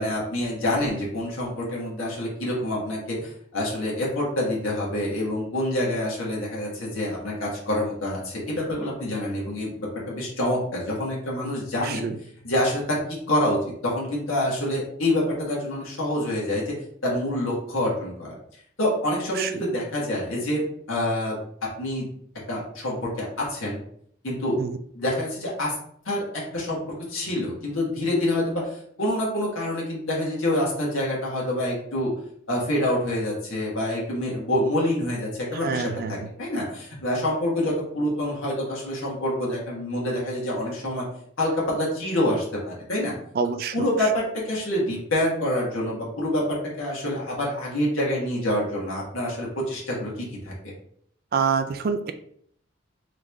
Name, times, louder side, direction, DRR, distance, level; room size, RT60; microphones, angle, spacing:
voice 1, 0.0-12.0 12.4-13.0 13.3-13.6 13.8-16.8 17.0-18.4 18.8-21.4 21.8-22.1 22.5-23.8 24.2-24.6 24.9-25.7 26.0-26.2 26.5-32.1 32.5-41.0 41.4-43.1 43.7-50.7, left 1 dB, 90° left, -4 dB, 1.5 m, -27 dB
voice 2, 35.6-36.1 43.4-43.7 51.3-52.1, right 5 dB, 50° right, 8 dB, 0.3 m, -26 dB
3.8 x 3.2 x 3.5 m, 0.65 s
head